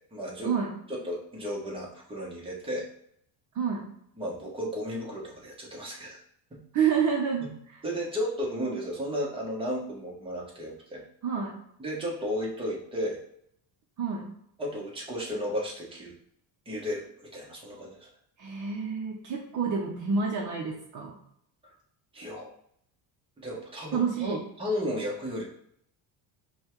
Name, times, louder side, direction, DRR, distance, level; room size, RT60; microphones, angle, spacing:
voice 1, 0.1-0.5 0.9-2.8 4.2-6.2 6.5-6.6 7.8-11.0 11.8-13.2 14.6-16.1 16.7-18.1 22.1-22.5 23.4-25.4, equal, 10° right, -4 dB, 1.0 m, -34 dB
voice 2, 3.5-3.9 6.7-7.8 11.2-11.5 14.0-14.3 18.4-21.1 23.9-24.4, right 6 dB, 45° right, -1 dB, 0.7 m, -28 dB
5.3 x 2.3 x 3.0 m, 0.69 s
cardioid pair, 140°, 43 cm